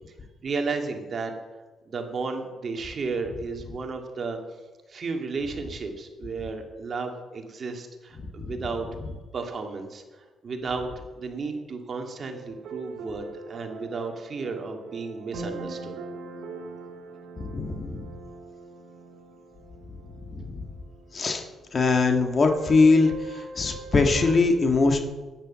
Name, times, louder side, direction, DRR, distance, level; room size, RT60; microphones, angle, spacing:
voice 1, 0.4-1.3 1.9-4.4 4.9-8.9 9.3-16.0, right 4 dB, 45° right, 4 dB, 2.1 m, -33 dB
voice 2, 8.2-8.5 17.4-18.1 20.3-20.7 21.1-21.5 21.7-25.0, left 3 dB, 40° left, 5 dB, 1.6 m, -22 dB
sound 1, 12.2-24.4, right 3 dB, 75° right, 1.8 m, -42 dB
10.5 x 9.4 x 7.3 m, 1.3 s
cardioid pair, 90°, 0 cm